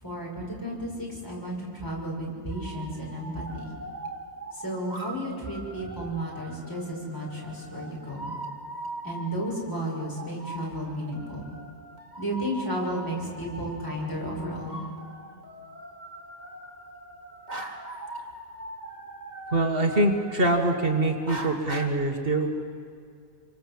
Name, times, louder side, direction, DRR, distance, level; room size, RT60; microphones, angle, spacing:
voice 1, 0.0-3.7 4.5-8.3 9.0-11.5 12.2-14.8, right 1 dB, 20° left, -3 dB, 6.7 m, -33 dB
sound 1, 2.5-21.9, right 1 dB, 40° right, 2.4 m, -41 dB
voice 2, 19.5-22.5, right 2 dB, 55° right, 3 dB, 2.0 m, -24 dB
27.0 x 24.5 x 7.8 m, 2.3 s
omnidirectional pair, 1.2 m